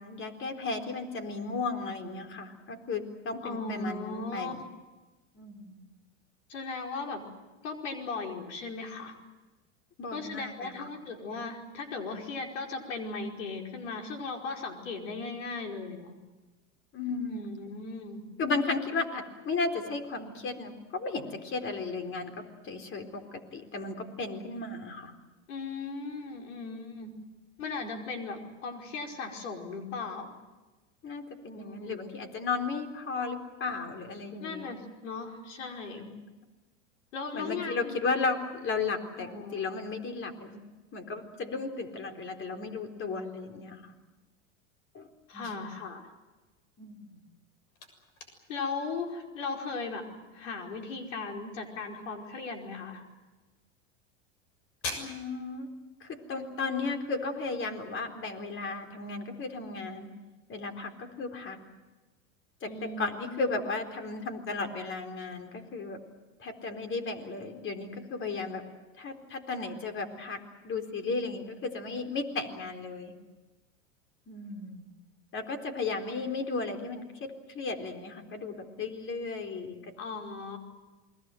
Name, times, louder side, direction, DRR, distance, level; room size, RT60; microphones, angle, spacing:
voice 1, 0.0-4.6 5.3-5.8 10.0-10.9 16.9-17.5 18.4-25.1 31.0-34.8 35.8-36.1 37.3-40.6 40.9-43.9 44.9-45.1 45.3-45.7 46.8-47.2 55.0-55.7 56.0-60.1 60.5-61.6 62.6-66.0 66.4-68.7 69.0-73.1 74.3-74.8 75.3-79.9, left 4 dB, 35° left, 6 dB, 4.1 m, -35 dB
voice 2, 3.4-4.5 6.5-7.2 7.6-9.2 10.1-16.2 17.3-18.2 25.5-27.1 27.6-30.3 31.5-32.0 34.4-36.1 37.1-38.0 39.1-39.8 45.3-46.1 48.5-50.1 50.3-53.1 62.6-63.6 80.0-80.6, left 4 dB, 85° left, 2 dB, 5.0 m, -37 dB
sound 1, 47.2-57.9, left 3 dB, 55° left, 7.0 m, -48 dB
28.5 x 21.5 x 7.8 m, 1.2 s
supercardioid pair, 110°, 36 cm